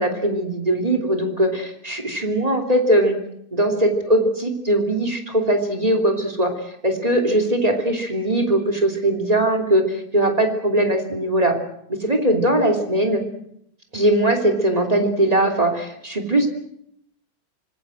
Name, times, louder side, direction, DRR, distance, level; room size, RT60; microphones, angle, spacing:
voice 1, 0.0-3.1 3.5-6.5 6.8-11.6 11.9-13.2 13.9-16.5, right 1 dB, 15° right, 3 dB, 3.1 m, -20 dB
26.0 x 18.5 x 7.8 m, 0.75 s
omnidirectional pair, 2.3 m